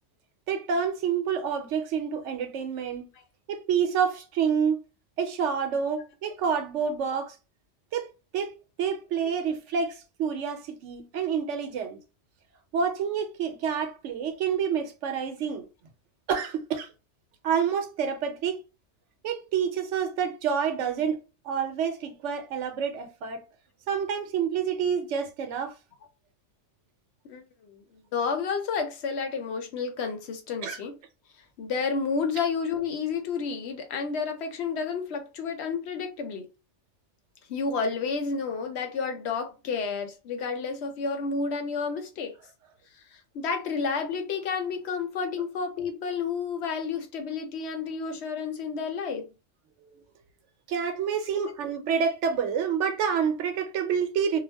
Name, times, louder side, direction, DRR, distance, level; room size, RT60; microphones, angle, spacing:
voice 1, 0.5-3.1 3.5-4.8 5.2-7.4 7.9-8.1 8.3-12.0 12.7-15.7 16.3-16.9 17.4-18.6 19.2-23.4 23.9-25.7 30.6-30.8 50.7-54.4, right 7 dB, 75° right, 0.9 m, -28 dB
voice 2, 27.3-27.8 28.1-30.9 31.6-36.5 37.5-42.3 43.1-49.3 51.4-51.5, left 5 dB, 70° left, 0.8 m, -31 dB
2.4 x 2.0 x 3.3 m
omnidirectional pair, 1.2 m